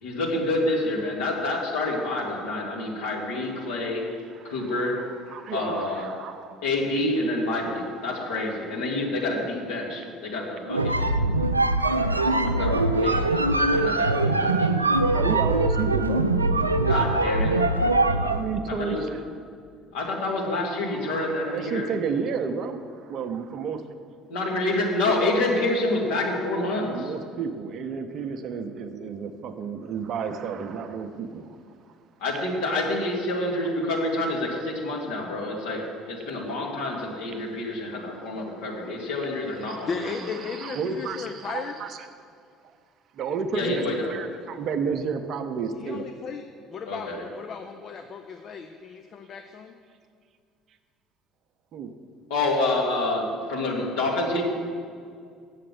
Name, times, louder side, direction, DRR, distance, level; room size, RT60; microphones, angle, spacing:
voice 1, 0.0-4.0 4.5-4.9 5.5-6.1 6.6-11.1 11.9-14.7 16.9-17.6 18.8-19.1 19.9-21.9 24.3-27.1 32.2-40.1 43.5-44.1 46.9-47.2 52.3-54.4, left 2 dB, 65° left, -2 dB, 1.9 m, -28 dB
voice 2, 4.3-6.6 7.2-7.3 10.2-10.3 11.7-12.7 13.1-13.6 15.1-16.2 18.3-19.2 20.8-23.8 26.8-31.6 37.3-37.4 37.8-38.2 39.6-42.1 42.6-42.8 43.1-43.8 44.1-46.1 51.7-51.9, right 6 dB, 45° right, 9 dB, 0.7 m, -32 dB
sound 1, 10.7-18.5, right 2 dB, 85° right, 0.3 m, -22 dB
voice 3, 39.9-41.7 45.7-46.4 46.7-49.7, left 5 dB, 40° left, 6 dB, 0.6 m, -36 dB
7.6 x 7.3 x 8.0 m, 2.2 s
figure-of-eight pair, 60°, 0 cm